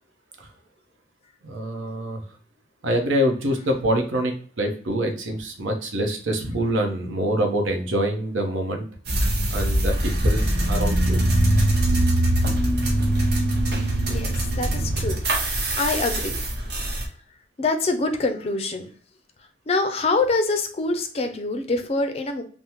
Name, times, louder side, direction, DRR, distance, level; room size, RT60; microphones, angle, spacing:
voice 1, 1.4-2.2 2.8-8.9 9.5-11.2, equal, 90° right, 4 dB, 0.7 m, -25 dB
sound 1, 9.1-17.0, right 1 dB, 55° right, 0.8 m, -22 dB
voice 2, 13.8-16.4 17.6-18.9 19.7-22.4, left 3 dB, 30° left, 6 dB, 0.4 m, -25 dB
3.4 x 2.0 x 2.8 m, 0.43 s
head